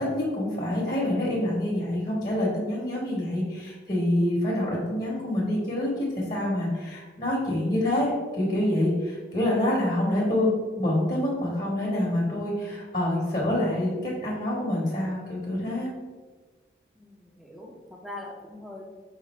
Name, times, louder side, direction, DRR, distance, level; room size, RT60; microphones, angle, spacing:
voice 1, 0.0-5.9 6.3-15.9, left 1 dB, 40° left, -6 dB, 1.0 m, -26 dB
voice 2, 17.0-18.8, left 2 dB, ahead, -2 dB, 0.5 m, -42 dB
5.0 x 2.4 x 4.2 m, 1.4 s
head